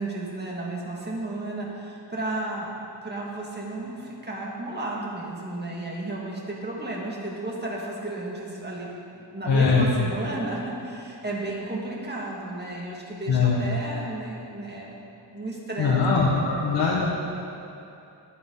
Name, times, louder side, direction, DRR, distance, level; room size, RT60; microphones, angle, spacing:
voice 1, 0.0-2.7 3.0-16.6, right 2 dB, 20° right, -3 dB, 2.0 m, -33 dB
voice 2, 9.4-9.9 13.3-13.6 15.8-17.1, left 4 dB, 65° left, -5 dB, 1.6 m, -21 dB
21.0 x 8.3 x 4.0 m, 2.8 s
wide cardioid pair, 175°, 46 cm